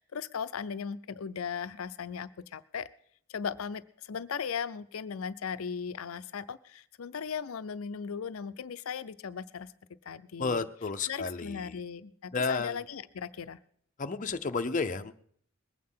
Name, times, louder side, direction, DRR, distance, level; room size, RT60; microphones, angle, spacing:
voice 1, 0.0-2.9 3.3-9.7 10.1-10.7 11.1-13.6, left 6 dB, 85° left, 12 dB, 0.5 m, -37 dB
voice 2, 10.4-11.8 12.3-12.8 14.0-15.1, left 4 dB, 40° left, 7 dB, 0.7 m, -32 dB
20.5 x 8.6 x 5.6 m, 0.62 s
head